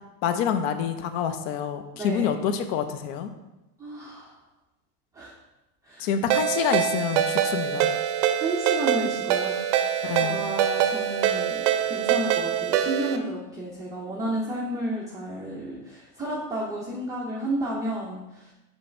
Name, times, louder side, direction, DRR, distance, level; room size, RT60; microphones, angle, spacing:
voice 1, 0.2-3.3 6.0-7.9 10.0-10.4, left 8 dB, 60° left, 8 dB, 0.7 m, -27 dB
voice 2, 1.9-2.3 3.8-4.3 5.1-5.3 5.8-6.1 8.4-9.6 10.2-18.5, right 1 dB, 10° right, -6 dB, 0.4 m, -32 dB
Ringtone, 6.3-13.2, right 10 dB, 55° right, 0.5 m, -24 dB
5.4 x 3.2 x 5.5 m, 0.98 s
supercardioid pair, 150°, 44 cm